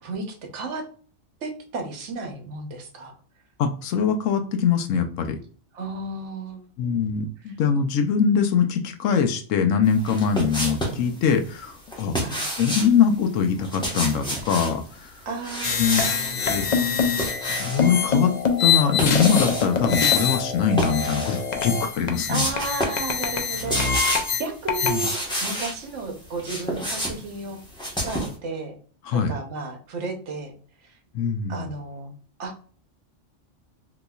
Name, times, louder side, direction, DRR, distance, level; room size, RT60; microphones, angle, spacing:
voice 1, 0.0-0.8 1.4-3.1 5.7-6.7 7.4-7.5 12.2-12.4 15.3-16.8 22.3-23.8 24.4-25.1 25.4-27.6 28.0-28.7 29.1-30.5 30.8-30.9 31.5-32.1 32.4-32.5, right 3 dB, 70° right, 4 dB, 1.1 m, -33 dB
voice 2, 3.6-5.4 6.8-12.2 12.6-15.1 15.8-16.0 16.4-16.7 17.6-18.3 18.6-22.5 24.9-25.1 29.0-29.4 31.1-31.7, left 6 dB, 85° left, 6 dB, 1.0 m, -23 dB
sound 1, 10.0-11.0 11.9-12.9 13.6-14.8 15.4-16.3 16.8-17.9 18.8-19.7 20.7-21.4 21.8-21.9 22.3-23.1 23.4-24.4 24.9-25.8 26.2-28.4, equal, 5° left, 0.9 m, -29 dB
sound 2, 15.6-25.2, left 6 dB, 55° left, 0.5 m, -24 dB
3.9 x 2.9 x 2.3 m, 0.43 s
omnidirectional pair, 1.3 m